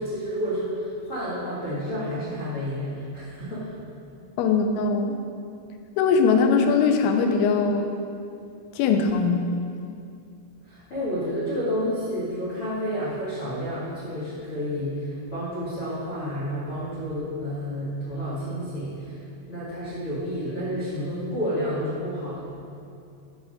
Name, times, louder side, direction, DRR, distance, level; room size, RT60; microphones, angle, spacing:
voice 1, 0.0-3.7 10.6-19.2 19.5-22.4, equal, 55° left, -9 dB, 1.5 m, -30 dB
voice 2, 4.4-5.2 6.0-7.9 8.8-9.5, left 5 dB, 90° left, 5 dB, 3.4 m, -21 dB
10.0 x 5.0 x 6.5 m, 2.5 s
omnidirectional pair, 5.7 m